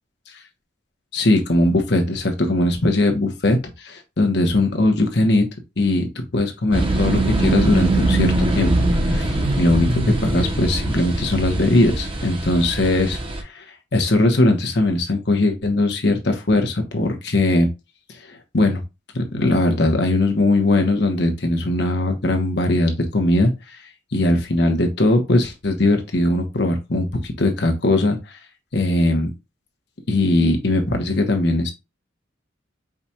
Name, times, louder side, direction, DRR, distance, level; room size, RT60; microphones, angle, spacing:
voice 1, 1.1-5.5 5.8-8.7 9.1-13.2 13.5-13.6 13.9-17.7 18.3-18.8 19.1-23.5 24.1-28.4 28.7-29.3 30.1-31.7, left 2 dB, 60° left, 4 dB, 1.1 m, -20 dB
sound 1, 6.7-13.4, right 2 dB, 30° right, 0.8 m, -22 dB
4.9 x 2.4 x 4.3 m, 0.24 s
head